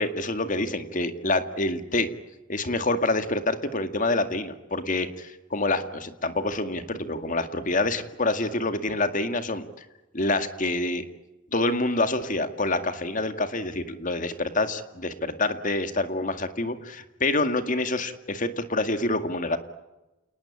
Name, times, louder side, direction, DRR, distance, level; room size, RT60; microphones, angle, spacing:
voice 1, 0.0-2.1 2.5-9.8 10.1-11.1 11.5-19.6, left 2 dB, 40° left, 9 dB, 2.1 m, -27 dB
28.5 x 19.5 x 8.8 m, 1.0 s
head